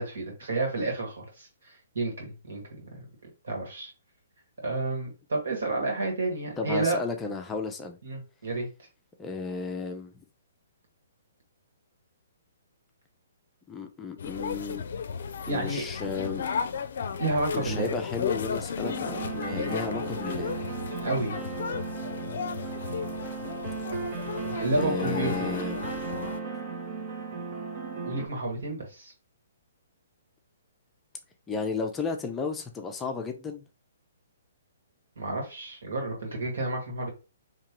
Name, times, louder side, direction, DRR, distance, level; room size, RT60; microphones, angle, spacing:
voice 1, 0.0-2.9 3.4-3.9 4.6-7.0 8.0-8.7 15.5-15.8 17.2-17.9 21.0-21.4 24.6-25.3 28.0-29.1 35.2-37.1, right 2 dB, 80° right, 1.9 m, -30 dB
voice 2, 6.6-8.0 9.2-10.2 13.7-14.8 15.5-16.5 17.5-20.6 24.8-25.8 31.5-33.6, left 4 dB, 15° left, 0.5 m, -33 dB
sound 1, 14.2-26.4, left 6 dB, 65° left, 0.4 m, -34 dB
sound 2, 18.8-28.3, right 4 dB, 35° right, 0.9 m, -35 dB
3.6 x 2.9 x 3.0 m
hypercardioid pair, 150°, 0 cm